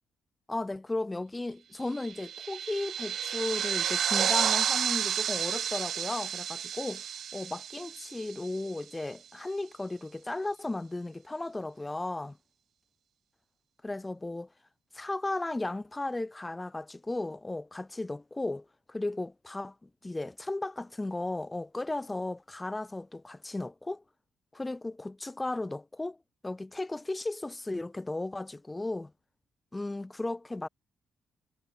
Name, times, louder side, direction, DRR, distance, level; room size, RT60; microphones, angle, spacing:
voice 1, 0.5-7.0 7.3-12.4 13.8-14.5 14.9-24.0 24.5-26.2 26.4-29.1 29.7-30.7, left 2 dB, 15° left, 1.0 m, -35 dB
sound 1, 1.9-8.8, right 9 dB, 65° right, 1.4 m, -31 dB
cardioid pair, 90°, 0 cm